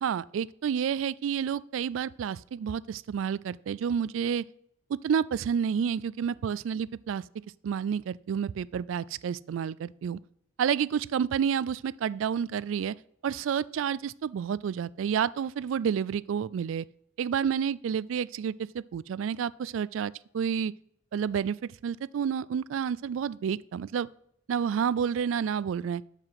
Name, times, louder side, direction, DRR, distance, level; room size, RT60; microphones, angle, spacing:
voice 1, 0.0-4.4 4.9-7.2 7.6-10.2 10.6-12.9 13.2-16.8 17.2-20.7 21.1-21.6 21.8-24.1 24.5-26.0, right 7 dB, 75° right, 0.3 m, -29 dB
12.5 x 4.9 x 5.8 m
head